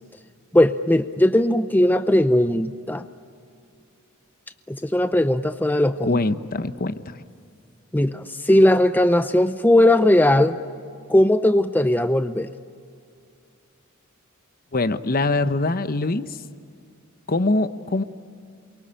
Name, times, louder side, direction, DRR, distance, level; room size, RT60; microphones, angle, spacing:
voice 1, 0.5-3.0 4.7-6.2 7.9-10.6 11.1-12.5, left 1 dB, 10° left, 10 dB, 0.6 m, -18 dB
voice 2, 6.1-7.2 14.7-16.4 17.3-18.0, left 2 dB, 45° left, 12 dB, 0.9 m, -23 dB
28.5 x 23.5 x 8.9 m, 2.3 s
head